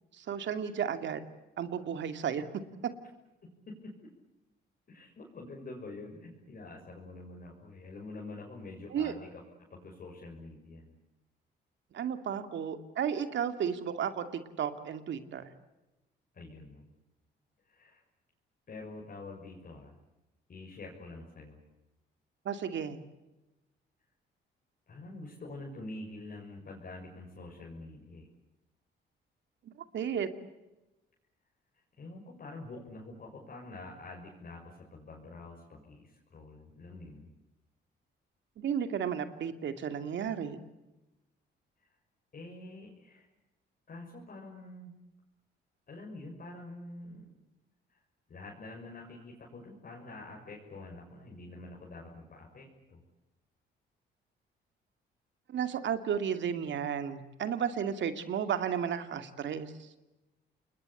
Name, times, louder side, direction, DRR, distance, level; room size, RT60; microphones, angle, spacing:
voice 1, 0.2-1.2 1.6-2.4 8.9-9.1 11.9-15.5 22.4-23.0 29.9-30.3 38.6-40.6 55.5-59.7, right 8 dB, 65° right, 9 dB, 2.6 m, -33 dB
voice 2, 3.4-3.9 4.9-9.4 9.7-11.0 16.3-16.8 17.6-18.0 18.7-19.9 20.5-21.6 24.9-28.3 31.9-37.3 42.3-43.3 43.9-44.9 45.9-47.3 47.9-48.0 48.3-53.0, left 2 dB, 45° left, -2 dB, 6.4 m, -46 dB
29.0 x 21.5 x 8.5 m, 1.0 s
cardioid pair, 90°, 20 cm